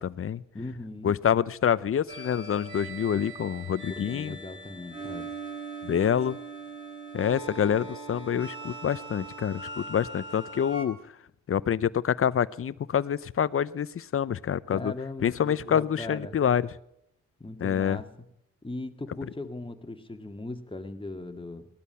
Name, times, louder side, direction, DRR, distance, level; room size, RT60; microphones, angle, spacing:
voice 1, 0.0-0.4 1.0-4.4 5.8-6.4 7.1-11.0 11.5-14.9 15.2-16.7 17.6-18.0, left 8 dB, 45° left, 18 dB, 0.7 m, -27 dB
voice 2, 0.5-1.1 3.9-5.3 14.7-16.4 17.4-18.1 18.6-21.7, left 2 dB, 15° left, 6 dB, 1.9 m, -38 dB
sound 1, 2.1-10.8, right 3 dB, 15° right, 5.9 m, -41 dB
19.5 x 12.5 x 5.7 m, 0.78 s
supercardioid pair, 60°, 31 cm